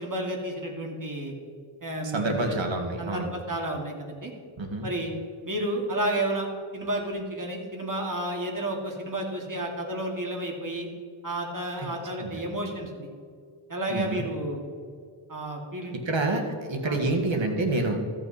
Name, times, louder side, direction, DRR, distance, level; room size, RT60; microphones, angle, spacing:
voice 1, 0.0-1.3 1.8-2.6 3.0-4.3 4.8-5.1 5.4-6.5 6.7-10.9 11.2-13.1 13.7-14.7 15.3-16.0 16.3-16.4 16.8-17.0, right 1 dB, 40° right, 0 dB, 2.5 m, -31 dB
voice 2, 2.0-3.3 4.6-4.9 12.2-12.4 13.9-14.3 16.1-17.9, right 2 dB, 70° right, 2 dB, 1.8 m, -27 dB
14.0 x 8.6 x 4.2 m, 2.1 s
wide cardioid pair, 60°, 47 cm